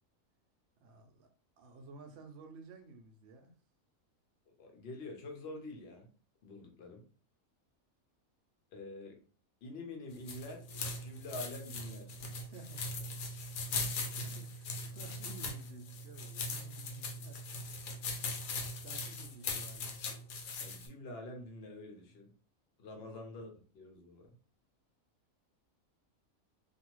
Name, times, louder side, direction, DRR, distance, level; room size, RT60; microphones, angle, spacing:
voice 1, 0.8-1.3 1.6-3.5 12.4-13.0 13.7-17.6 18.7-20.0 23.0-23.1, right 3 dB, 60° right, 4 dB, 0.8 m, -54 dB
voice 2, 4.5-6.1 6.4-7.0 8.7-9.2 9.6-12.2 20.6-22.3 22.8-24.4, left 2 dB, 55° left, 2 dB, 0.8 m, -47 dB
sound 1, 10.1-20.9, left 2 dB, 80° left, 1.1 m, -40 dB
2.6 x 2.4 x 2.9 m, 0.41 s
omnidirectional pair, 1.5 m